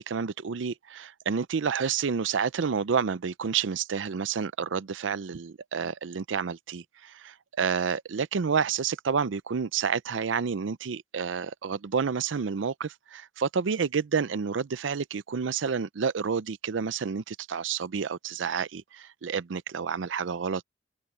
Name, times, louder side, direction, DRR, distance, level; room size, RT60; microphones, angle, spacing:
voice 1, 0.0-20.6, right 6 dB, 85° right, 0.5 m, -29 dB
head